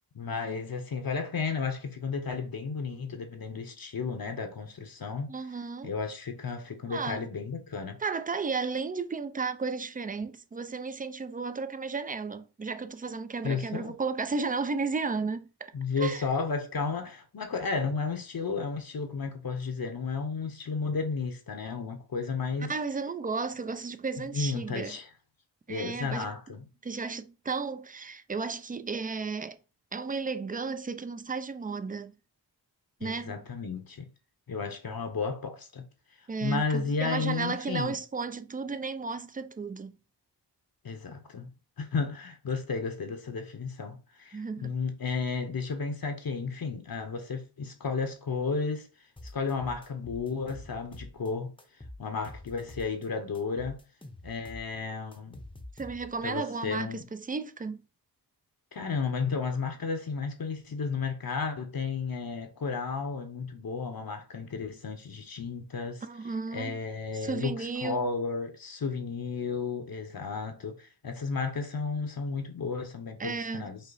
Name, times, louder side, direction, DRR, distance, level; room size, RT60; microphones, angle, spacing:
voice 1, 0.1-5.3 5.8-8.0 13.4-13.9 15.7-22.7 24.3-25.1 25.7-26.7 33.0-34.1 34.5-35.8 36.4-38.0 40.8-41.5 41.8-48.9 49.3-51.5 52.0-53.8 54.2-55.4 56.2-57.0 58.7-66.0 66.5-73.8, left 4 dB, 55° left, 0.8 m, -33 dB
voice 2, 5.3-5.9 6.9-7.3 8.0-16.3 22.7-25.0 25.7-26.3 26.8-29.6 29.9-32.1 33.0-33.4 36.3-40.0 44.3-44.7 55.8-57.8 66.0-66.8 67.1-68.1 73.2-73.7, right 4 dB, 20° right, 0.3 m, -34 dB
sound 1, 49.2-51.3 51.6-53.1 53.3-56.3, left 1 dB, 10° left, 0.7 m, -47 dB
5.5 x 2.0 x 3.9 m
wide cardioid pair, 90°, 43 cm